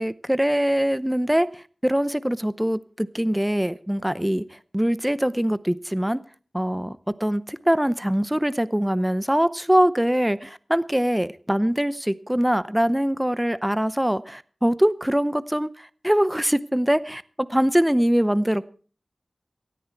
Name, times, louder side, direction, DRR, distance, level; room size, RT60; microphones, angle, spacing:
voice 1, 0.0-1.5 1.8-4.4 4.7-6.2 6.5-15.7 16.0-18.7, equal, 10° right, 16 dB, 0.7 m, -23 dB
18.5 x 13.5 x 4.6 m, 0.41 s
wide cardioid pair, 70°, 0 cm